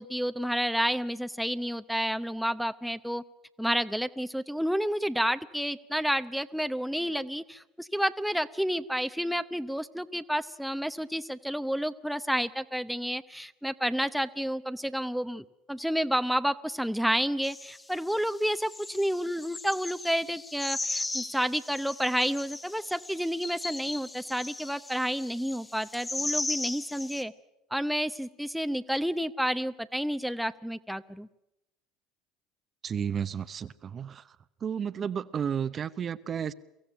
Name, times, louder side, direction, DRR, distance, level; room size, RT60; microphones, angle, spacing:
voice 1, 0.0-3.2 3.6-27.3 27.7-31.3, equal, ahead, 0.8 m, -30 dB
sound 1, 17.4-27.2, left 2 dB, 20° left, 1.6 m, -37 dB
voice 2, 32.8-34.4 34.6-36.5, right 7 dB, 40° right, 0.8 m, -32 dB
24.0 x 15.0 x 10.0 m
hypercardioid pair, 80°, 0 cm